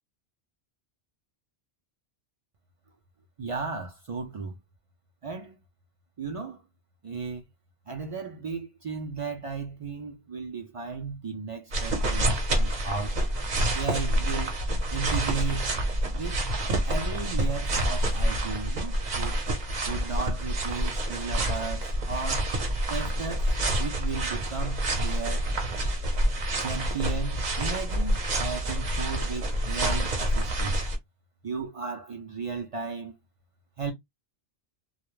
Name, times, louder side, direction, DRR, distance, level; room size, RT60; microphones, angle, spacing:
voice 1, 3.4-4.6 5.2-5.6 6.2-6.6 7.0-7.4 7.9-13.2 13.7-14.6 14.9-15.7 16.1-16.4 16.8-19.4 19.9-22.6 22.9-23.5 23.8-25.5 26.6-30.8 31.4-33.2 33.8-33.9, right 4 dB, 65° right, 0.3 m, -35 dB
sound 1, 11.7-31.0, right 1 dB, 45° right, 0.7 m, -27 dB
2.2 x 2.1 x 2.9 m
omnidirectional pair, 1.1 m